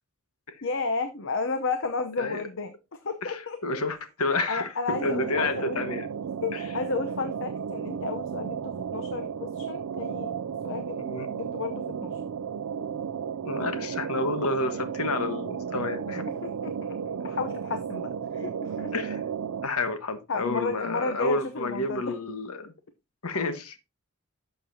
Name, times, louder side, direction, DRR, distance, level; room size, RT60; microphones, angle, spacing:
voice 1, 0.6-3.6 4.5-5.8 6.4-10.3 10.6-12.2 16.4-16.7 17.1-18.9 20.3-22.0, left 4 dB, 55° left, 0.8 m, -32 dB
voice 2, 3.2-6.1 6.5-6.7 11.0-11.3 13.4-16.3 18.9-19.2 19.6-22.7 23.2-23.8, left 2 dB, 75° left, 1.3 m, -30 dB
sound 1, 4.9-19.7, right 7 dB, 80° right, 0.4 m, -34 dB
11.5 x 6.8 x 2.7 m
head